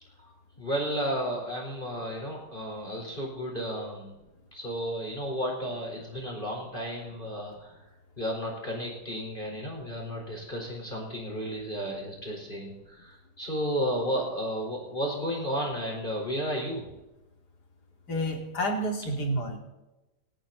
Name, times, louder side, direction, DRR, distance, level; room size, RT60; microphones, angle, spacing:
voice 1, 0.6-4.1 4.5-7.7 8.2-16.9, equal, 15° left, -1 dB, 4.2 m, -33 dB
voice 2, 18.1-19.6, equal, 30° left, 1 dB, 2.9 m, -29 dB
29.5 x 10.5 x 4.1 m, 1.0 s
omnidirectional pair, 3.7 m